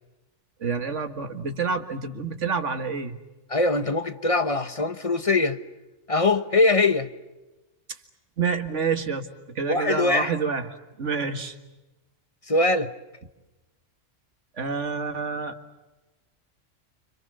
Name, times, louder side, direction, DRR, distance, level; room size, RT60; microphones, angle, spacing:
voice 1, 0.6-3.2 8.4-10.7 11.0-11.6 14.6-15.6, right 5 dB, 75° right, 2.1 m, -28 dB
voice 2, 3.5-5.6 6.1-7.1 9.7-10.3 12.5-12.9, left 2 dB, 30° left, 1.1 m, -22 dB
30.0 x 26.5 x 6.8 m
omnidirectional pair, 1.3 m